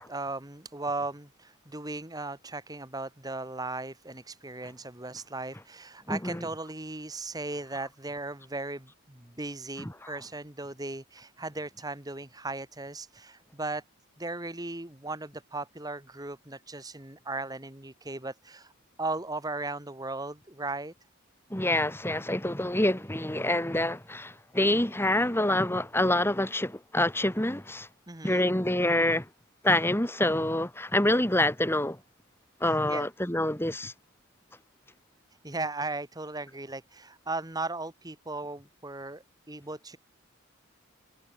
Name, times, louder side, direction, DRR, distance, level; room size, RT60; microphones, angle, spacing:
voice 1, 0.0-13.8 14.2-18.7 19.0-20.9 28.1-28.4 32.6-33.1 35.4-40.0, right 2 dB, 20° right, 1.8 m, -37 dB
voice 2, 6.1-6.4 9.8-9.9 21.5-27.9 28.2-29.3 29.6-32.0 32.6-33.9, left 1 dB, 10° left, 2.3 m, -26 dB
head